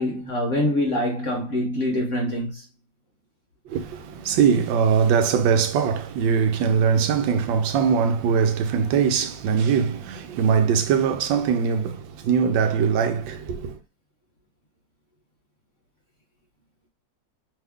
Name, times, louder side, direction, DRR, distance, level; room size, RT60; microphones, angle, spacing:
voice 1, 0.0-2.6, left 1 dB, 55° left, 0.9 m, -25 dB
voice 2, 3.7-13.8, right 6 dB, 85° right, 1.3 m, -21 dB
3.2 x 2.3 x 3.5 m
omnidirectional pair, 2.0 m